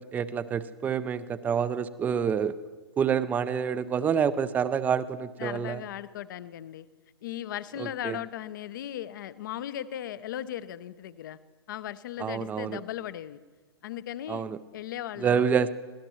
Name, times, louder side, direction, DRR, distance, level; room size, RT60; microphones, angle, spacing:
voice 1, 0.0-2.6 3.0-5.8 7.8-8.2 12.2-12.8 14.3-14.6 15.2-15.7, right 7 dB, 10° right, 15 dB, 0.4 m, -27 dB
voice 2, 5.4-6.9 7.2-11.4 11.7-13.4 13.8-14.4 14.7-15.5, left 12 dB, 50° left, 16 dB, 0.7 m, -37 dB
25.5 x 17.5 x 3.1 m, 1.4 s
figure-of-eight pair, 115°, 14 cm